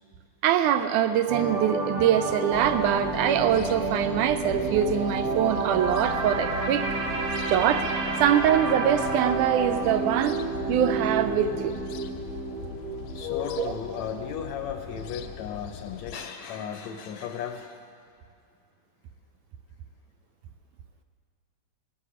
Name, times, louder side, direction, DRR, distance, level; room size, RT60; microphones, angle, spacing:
voice 1, 0.4-6.9 7.5-7.9 8.2-10.4 10.7-11.7 13.6-13.7, right 9 dB, 80° right, 10 dB, 2.1 m, -23 dB
sound 1, 1.3-15.4 15.7-16.0, right 4 dB, 55° right, 1.8 m, -30 dB
sound 2, 2.5-16.2, left 9 dB, 90° left, 2.2 m, -40 dB
Bell, 8.1-9.7, left 4 dB, 25° left, 0.8 m, -48 dB
voice 2, 13.1-17.8, left 8 dB, 75° left, 6 dB, 1.8 m, -34 dB
18.0 x 14.5 x 5.0 m, 2.3 s
omnidirectional pair, 3.7 m